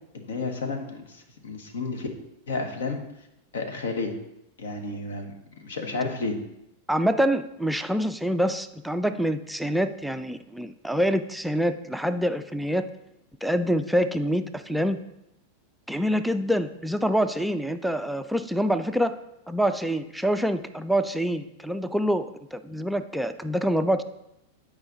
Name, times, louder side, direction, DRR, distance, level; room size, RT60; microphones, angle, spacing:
voice 1, 0.1-2.1 2.5-3.0 3.5-4.1 4.6-5.3 5.6-6.4, left 3 dB, 65° left, 5 dB, 1.2 m, -31 dB
voice 2, 6.9-12.8 13.4-15.0 15.9-19.2 19.5-24.0, equal, ahead, 9 dB, 0.4 m, -26 dB
8.8 x 5.0 x 3.9 m, 0.85 s
figure-of-eight pair, 90°, 0 cm